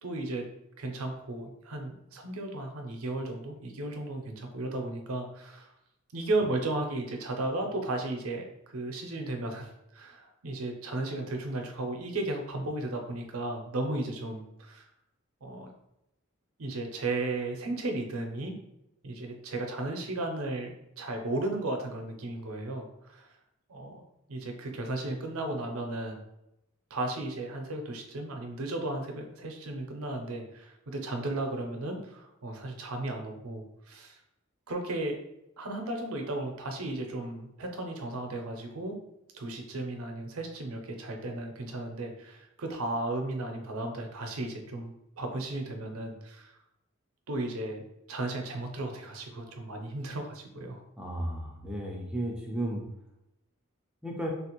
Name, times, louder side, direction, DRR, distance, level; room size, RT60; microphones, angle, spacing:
voice 1, 0.0-0.4 0.8-5.7 6.1-14.9 15.4-15.7 16.6-18.6 19.0-23.3 23.7-24.0 24.3-26.2 26.9-34.2 34.7-35.2 35.6-39.0 39.3-46.5 47.3-50.8, right 2 dB, 85° right, 3 dB, 0.6 m, -35 dB
voice 2, 51.0-52.8 54.0-54.3, right 1 dB, 5° right, -1 dB, 0.4 m, -34 dB
3.3 x 2.4 x 2.9 m, 0.86 s
head